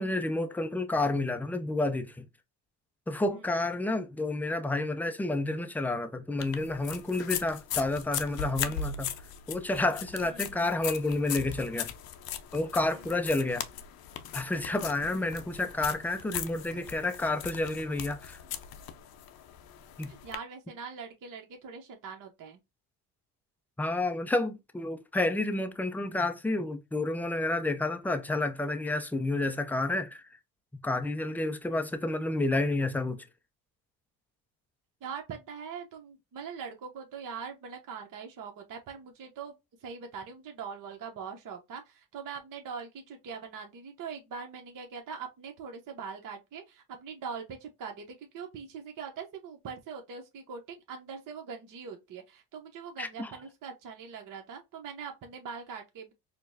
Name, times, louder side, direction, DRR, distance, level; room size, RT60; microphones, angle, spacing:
voice 1, 0.0-2.2 3.1-9.1 9.5-11.9 12.5-13.6 14.3-18.4 20.0-20.1 23.8-30.2 30.8-33.2 53.0-53.3, left 2 dB, 5° left, 0.3 m, -30 dB
sound 1, 6.4-20.4, left 9 dB, 50° left, 0.6 m, -39 dB
voice 2, 20.1-22.6 35.0-39.6 39.8-56.1, right 6 dB, 40° right, 0.9 m, -42 dB
4.3 x 2.2 x 2.6 m
supercardioid pair, 80°, 47 cm